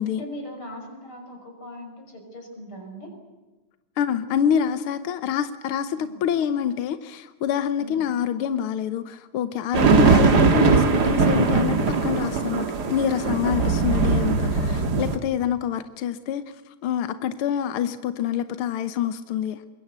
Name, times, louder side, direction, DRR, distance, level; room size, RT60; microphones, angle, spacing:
voice 1, 0.1-3.1 6.0-6.2 7.8-8.0 13.6-14.0 14.5-15.0, left 1 dB, 45° left, 6.7 m, -40 dB
voice 2, 4.0-19.6, left 9 dB, 65° left, 1.4 m, -26 dB
sound 1, 9.7-15.2, right 4 dB, 40° right, 2.0 m, -20 dB
25.5 x 22.0 x 8.2 m
omnidirectional pair, 3.4 m